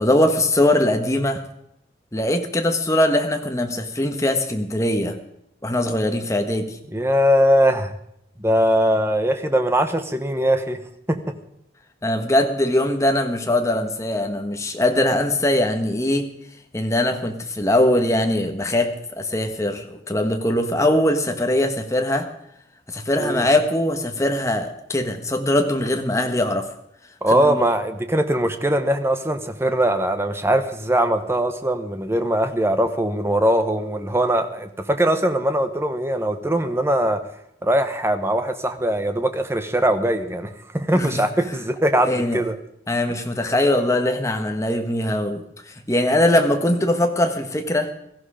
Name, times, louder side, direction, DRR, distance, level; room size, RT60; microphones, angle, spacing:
voice 1, 0.0-1.4 2.1-5.2 5.6-6.7 12.0-16.3 16.7-22.3 22.9-26.7 27.3-27.6 40.9-41.2 42.0-42.4 42.9-45.4 45.9-47.9, left 1 dB, 15° left, 5 dB, 1.5 m, -21 dB
voice 2, 6.9-7.9 8.4-10.8 11.1-11.4 23.2-23.5 27.2-37.2 37.6-42.6, right 1 dB, 15° right, 8 dB, 1.1 m, -21 dB
17.0 x 14.5 x 5.0 m, 0.76 s
head